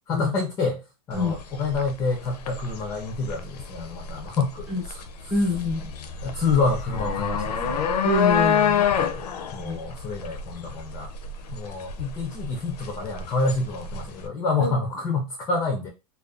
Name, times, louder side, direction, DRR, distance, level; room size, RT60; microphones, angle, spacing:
voice 1, 0.1-5.0 6.2-7.9 8.9-9.2 9.5-11.1 11.5-15.9, left 4 dB, 15° left, 2 dB, 0.4 m, -28 dB
sound 1, 1.1-14.3, left 7 dB, 85° left, 0.4 m, -28 dB
voice 2, 5.3-5.9 8.0-8.9 9.6-9.8 14.6-14.8, left 2 dB, 5° right, -2 dB, 0.7 m, -25 dB
2.5 x 2.2 x 2.3 m, 0.26 s
supercardioid pair, 145°, 20 cm